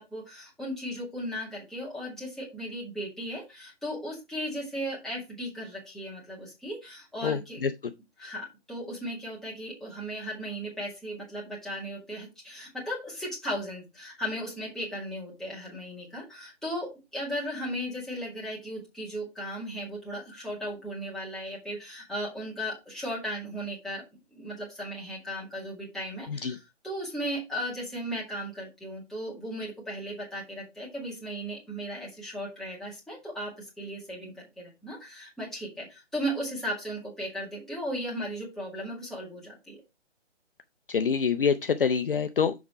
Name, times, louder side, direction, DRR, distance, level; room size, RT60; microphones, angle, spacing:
voice 1, 0.0-7.6 8.2-24.0 24.3-39.8, equal, ahead, 2.1 m, -36 dB
voice 2, 7.2-7.7 26.3-26.6 40.9-42.5, left 6 dB, 50° left, 0.6 m, -26 dB
7.1 x 5.1 x 4.6 m
figure-of-eight pair, 150°, 35 cm